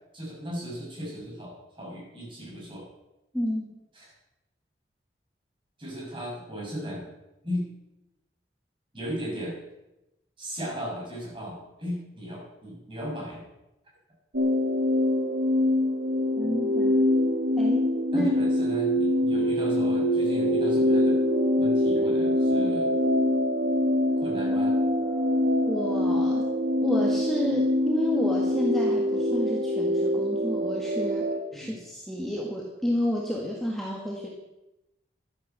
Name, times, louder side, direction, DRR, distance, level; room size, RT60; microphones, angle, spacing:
voice 1, 0.1-2.8 3.9-4.1 5.8-7.1 7.4-7.7 8.9-9.6 10.4-13.4 18.1-21.2 21.6-23.0 24.2-24.8 31.5-31.8, equal, 30° right, -4 dB, 6.8 m, -36 dB
voice 2, 3.3-3.8 16.4-17.0 17.6-18.4 25.6-26.4 26.8-34.3, left 1 dB, ahead, -3 dB, 1.8 m, -30 dB
sound 1, 14.3-31.4, left 1 dB, 85° right, 2.3 m, -24 dB
13.0 x 10.5 x 7.5 m, 0.94 s
head